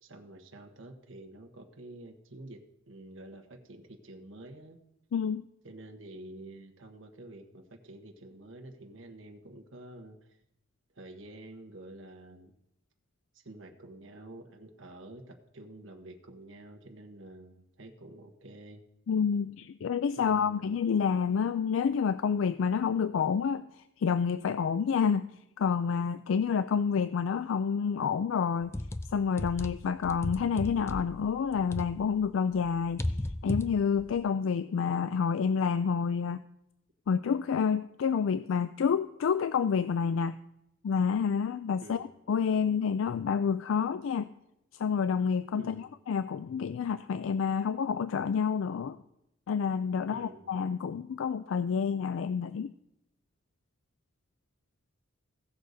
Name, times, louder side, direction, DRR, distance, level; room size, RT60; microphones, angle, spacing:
voice 1, 0.0-4.8 5.6-10.4 10.9-12.5 13.3-18.8 20.2-20.8 41.8-42.1 45.5-45.9 50.1-50.5, right 1 dB, 75° right, 4 dB, 1.2 m, -49 dB
voice 2, 5.1-5.4 19.1-23.7 24.0-25.3 25.6-28.7 29.1-33.0 33.4-36.4 37.1-40.3 40.8-44.3 44.8-49.0 49.5-52.7, left 6 dB, 80° left, 13 dB, 0.4 m, -28 dB
sound 1, 28.6-32.3 32.5-34.2, left 1 dB, 15° left, 0.4 m, -35 dB
16.5 x 6.5 x 4.0 m, 0.81 s
head